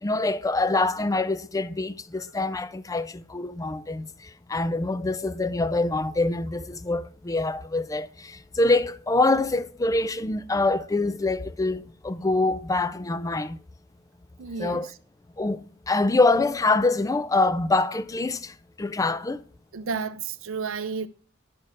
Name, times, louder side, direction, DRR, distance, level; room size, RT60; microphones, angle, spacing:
voice 1, 0.0-4.1 4.5-13.6 14.6-14.9 15.4-19.4, left 2 dB, 15° left, 0.4 m, -25 dB
voice 2, 14.4-14.9 19.7-21.1, right 5 dB, 75° right, 0.6 m, -32 dB
11.5 x 4.4 x 6.2 m
head